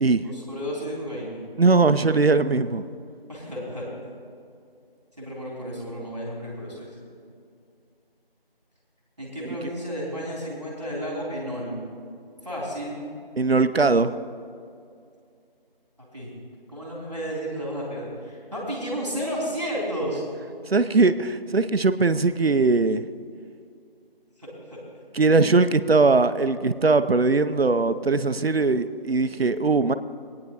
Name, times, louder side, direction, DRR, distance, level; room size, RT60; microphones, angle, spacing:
voice 1, 0.2-1.4 3.3-3.8 5.2-7.0 9.2-11.8 12.4-13.0 16.1-16.3 16.7-20.2 24.4-24.8, equal, 30° right, -5 dB, 3.1 m, -32 dB
voice 2, 1.6-2.8 13.4-14.1 20.7-23.0 25.1-29.9, right 3 dB, 85° right, 12 dB, 0.6 m, -20 dB
20.0 x 9.5 x 2.9 m, 2.4 s
figure-of-eight pair, 180°, 29 cm